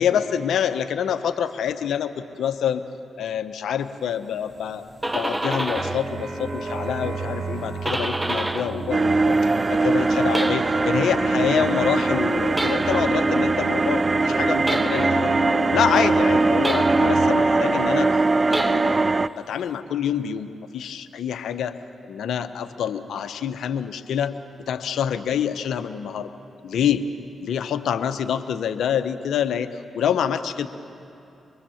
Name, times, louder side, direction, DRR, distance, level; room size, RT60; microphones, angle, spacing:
voice 1, 0.0-2.8 3.2-4.8 5.1-15.3 15.7-18.2 18.5-19.0 19.4-21.8 22.0-24.4 24.7-26.3 26.6-27.1 27.4-30.7, left 8 dB, 75° left, 8 dB, 0.9 m, -26 dB
sound 1, 4.7-6.1 6.5-8.9 9.2-11.0 12.5-13.2 14.6-15.3 16.6-17.3 18.4-19.2, right 1 dB, 20° right, 1.1 m, -30 dB
sound 2, 5.0-17.3, right 2 dB, 60° right, 2.8 m, -30 dB
sound 3, 8.9-19.3, right 3 dB, 35° right, 0.6 m, -21 dB
24.0 x 23.0 x 7.2 m, 2.9 s
hypercardioid pair, 40°, 0 cm